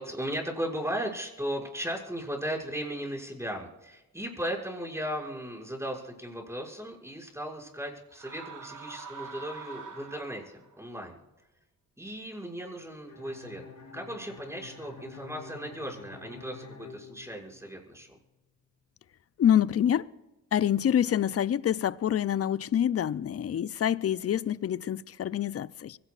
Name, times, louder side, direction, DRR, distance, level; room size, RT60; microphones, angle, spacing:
voice 1, 0.0-11.2 12.0-13.6 13.9-18.1, equal, 5° right, 6.2 m, -36 dB
sound 1, 8.1-10.7, right 5 dB, 55° right, 2.0 m, -44 dB
Bowed string instrument, 13.1-17.9, left 4 dB, 55° left, 3.5 m, -48 dB
voice 2, 19.4-20.1 20.5-26.0, left 9 dB, 40° left, 0.6 m, -26 dB
24.0 x 17.5 x 2.5 m
supercardioid pair, 45°, 37 cm